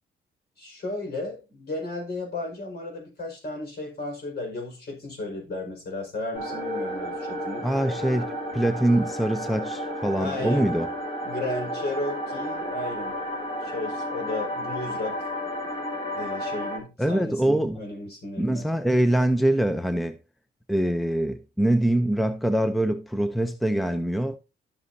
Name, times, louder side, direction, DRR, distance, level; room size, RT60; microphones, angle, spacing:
voice 1, 0.6-7.7 10.2-10.7 11.2-13.2 13.6-15.3 16.1-18.7, left 2 dB, 55° left, 5.3 m, -34 dB
sound 1, 6.3-16.8, equal, 30° left, 4.3 m, -32 dB
voice 2, 7.6-10.9 17.0-17.8 18.4-20.2 20.7-24.4, right 1 dB, ahead, 0.6 m, -24 dB
12.0 x 7.6 x 2.7 m
cardioid pair, 90°, 20 cm